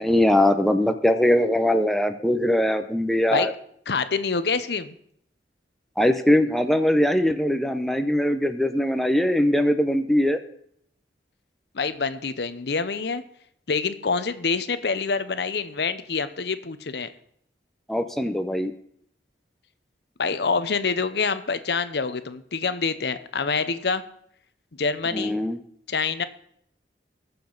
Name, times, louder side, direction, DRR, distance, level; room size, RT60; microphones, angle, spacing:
voice 1, 0.0-3.5 6.0-10.4 17.9-18.7 25.1-25.6, left 1 dB, ahead, 7 dB, 0.6 m, -21 dB
voice 2, 3.9-4.9 11.7-13.2 13.7-17.1 20.2-24.0 24.8-25.4 25.9-26.2, left 5 dB, 70° left, 13 dB, 0.7 m, -26 dB
20.0 x 6.9 x 3.9 m, 0.68 s
head